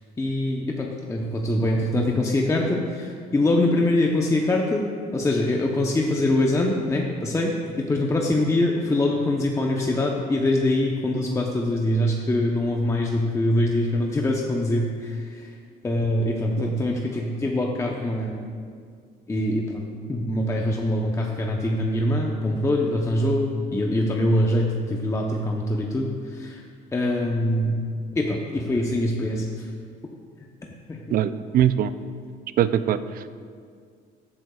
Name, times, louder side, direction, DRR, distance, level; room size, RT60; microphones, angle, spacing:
voice 1, 0.2-4.9 5.1-15.5 15.8-18.4 19.3-19.8 20.1-26.6 26.9-27.8 28.1-29.4 30.9-31.2, left 1 dB, 15° left, 0 dB, 0.8 m, -24 dB
voice 2, 31.1-31.9 32.6-33.3, right 10 dB, 60° right, 13 dB, 0.5 m, -22 dB
14.5 x 8.6 x 2.4 m, 2.1 s
cardioid pair, 110°, 17 cm